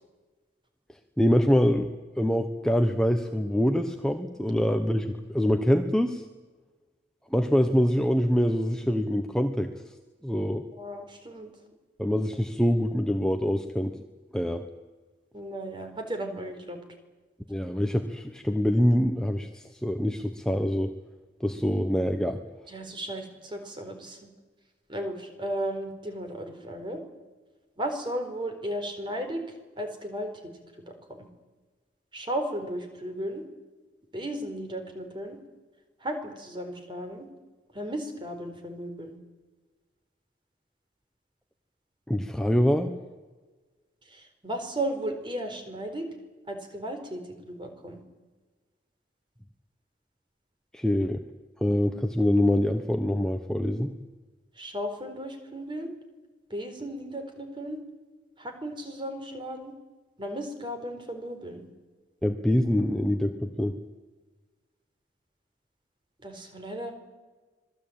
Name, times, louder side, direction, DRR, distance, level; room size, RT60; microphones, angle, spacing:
voice 1, 1.2-6.2 7.3-9.7 10.2-10.6 12.0-14.0 14.3-14.6 17.5-20.9 21.4-22.4 42.1-42.9 50.7-51.2 51.6-53.9 62.2-63.8, equal, 5° left, 5 dB, 1.1 m, -25 dB
voice 2, 10.8-11.5 15.3-16.8 22.7-24.3 24.9-27.0 27.8-29.4 29.8-30.5 30.9-31.3 32.1-33.4 34.1-35.4 36.0-37.3 37.7-39.2 44.1-46.1 46.5-48.0 54.6-55.9 56.5-57.8 58.4-59.7 60.2-61.7 66.2-66.9, right 1 dB, 25° right, 5 dB, 4.5 m, -35 dB
26.0 x 18.5 x 8.9 m, 1.3 s
head